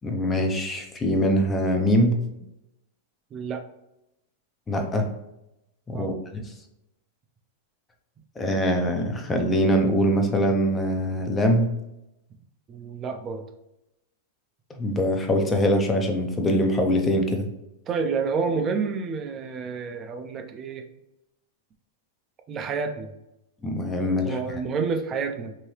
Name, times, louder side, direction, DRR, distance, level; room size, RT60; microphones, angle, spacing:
voice 1, 0.0-2.2 4.7-5.1 5.9-6.1 8.4-11.7 14.7-17.5 23.6-24.6, equal, 15° left, 4 dB, 0.6 m, -23 dB
voice 2, 3.3-3.6 5.9-6.2 12.7-13.4 17.9-20.8 22.5-23.1 24.2-25.5, right 5 dB, 30° right, 5 dB, 0.5 m, -29 dB
2.9 x 2.7 x 3.1 m, 0.87 s
hypercardioid pair, 120°, 0 cm